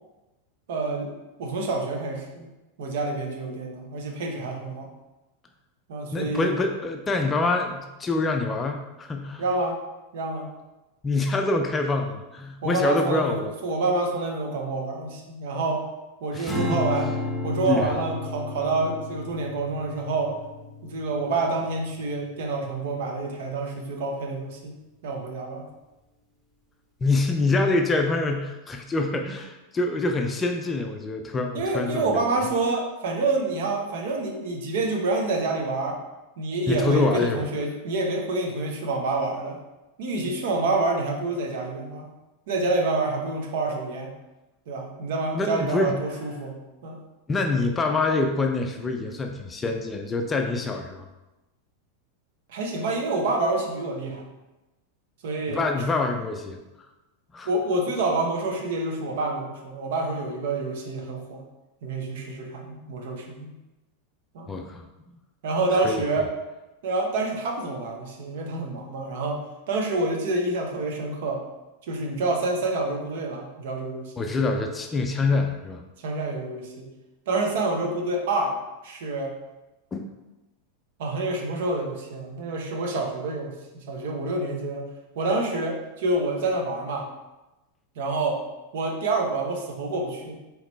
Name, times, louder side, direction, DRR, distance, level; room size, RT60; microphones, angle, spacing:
voice 1, 0.7-1.1 1.4-2.5 2.8-4.9 5.9-6.5 9.4-9.8 10.1-10.5 12.6-15.8 16.2-17.1 17.4-20.3 20.8-24.8 25.0-25.6 31.5-36.0 36.4-39.6 40.0-42.1 42.5-44.1 44.7-46.6 46.8-47.0 52.5-54.3 55.2-55.8 57.5-61.4 61.8-63.5 64.3-64.5 65.4-66.3 66.8-69.4 69.7-71.4 71.9-74.3 76.0-76.9 77.3-78.6 78.8-79.3 81.0-84.9 85.2-87.1 88.0-88.4 88.7-90.4, right 2 dB, 55° right, 2 dB, 0.8 m, -27 dB
voice 2, 6.1-9.4 11.0-13.5 16.3-16.8 17.6-17.9 27.0-32.2 36.7-37.4 45.3-46.0 47.3-51.0 55.5-56.6 57.3-57.5 64.5-64.9 65.8-66.0 74.2-75.8 79.9-80.0, left 3 dB, 15° left, 4 dB, 0.4 m, -25 dB
Strum, 16.5-22.9, left 2 dB, 5° right, 1.2 m, -33 dB
4.8 x 3.1 x 3.2 m, 1.0 s
figure-of-eight pair, 90°, 0 cm